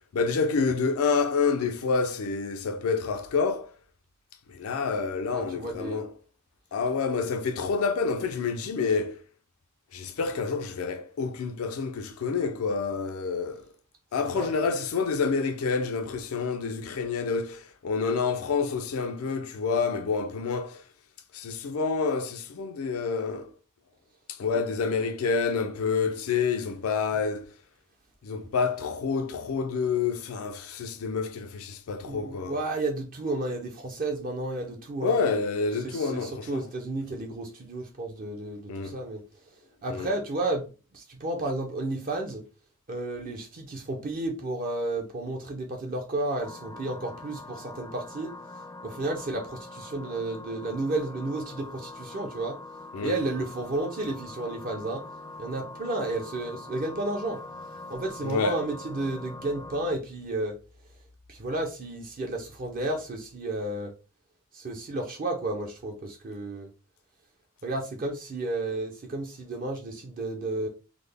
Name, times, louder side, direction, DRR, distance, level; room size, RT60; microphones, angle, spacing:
voice 1, 0.1-3.7 4.5-6.1 6.7-9.2 9.9-13.7 14.1-20.8 21.3-23.5 24.3-27.5 28.2-32.5 35.0-36.6 38.7-39.0 39.9-40.1 52.9-53.2 58.2-58.6, left 5 dB, 85° left, 0.4 m, -28 dB
voice 2, 5.3-6.0 14.3-14.5 24.5-24.6 32.0-35.1 35.8-39.2 39.8-40.7 40.9-42.4 42.9-48.3 48.8-52.6 53.0-55.1 55.4-57.4 57.9-60.6 61.3-63.9 64.5-66.7 67.6-70.7, right 2 dB, 40° right, 0.5 m, -32 dB
sound 1, 46.4-59.9, left 2 dB, 15° left, 0.4 m, -43 dB
3.6 x 2.0 x 3.3 m
head